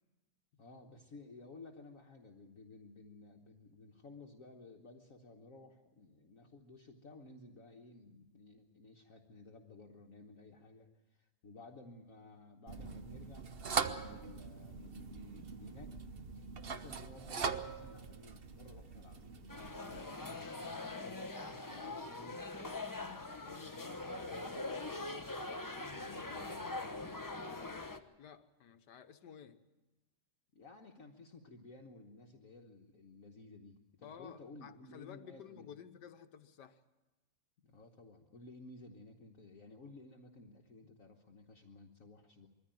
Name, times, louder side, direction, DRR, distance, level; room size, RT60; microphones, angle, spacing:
voice 1, 0.5-13.5 13.9-15.9 16.3-22.5 22.9-25.1 25.8-27.9 30.5-35.7 37.6-42.5, left 3 dB, 55° left, 2 dB, 1.6 m, -55 dB
sound 1, 12.7-20.0, right 5 dB, 40° right, 1.0 m, -41 dB
sound 2, 19.5-28.0, left 2 dB, 15° left, 0.7 m, -43 dB
voice 2, 28.2-29.6 34.0-36.8, left 8 dB, 80° left, 9 dB, 1.6 m, -53 dB
22.5 x 14.5 x 9.1 m, 1.1 s
omnidirectional pair, 1.8 m